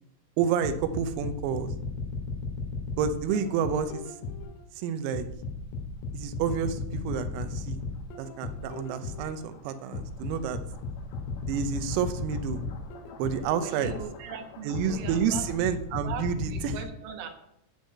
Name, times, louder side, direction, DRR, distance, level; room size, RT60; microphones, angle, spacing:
voice 1, 0.4-1.7 3.0-4.0 4.8-5.3 6.1-7.8 8.2-10.6 11.5-12.6 13.2-13.9 14.7-16.8, right 8 dB, 90° right, 9 dB, 3.7 m, -29 dB
sound 1, 0.6-4.6 5.1-9.4 9.9-14.2 14.7-16.8, left 4 dB, 85° left, 4.4 m, -35 dB
sound 2, 6.0-16.0, left 5 dB, 65° left, 3.4 m, -52 dB
voice 2, 13.6-15.7 16.0-17.3, right 7 dB, 75° right, 4 dB, 3.6 m, -40 dB
11.0 x 7.3 x 7.7 m, 0.77 s
omnidirectional pair, 6.0 m